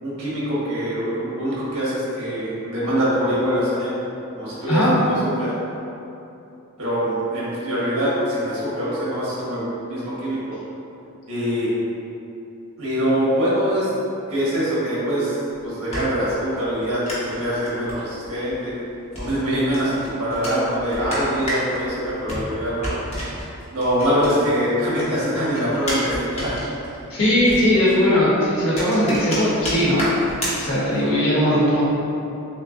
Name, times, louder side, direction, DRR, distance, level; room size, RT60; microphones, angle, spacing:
voice 1, 0.0-4.0 4.3-5.5 6.8-10.5 11.3-11.7 12.8-13.9 14.3-15.4 15.6-18.7 19.2-22.9 23.7-26.6, equal, 80° right, -8 dB, 1.3 m, -23 dB
voice 2, 4.7-5.0 27.1-30.1 30.6-31.8, left 1 dB, 65° left, -8 dB, 1.3 m, -19 dB
sound 1, 15.5-24.7 24.9-31.2, equal, 30° left, 0.9 m, -32 dB
6.2 x 2.2 x 2.6 m, 2.9 s
head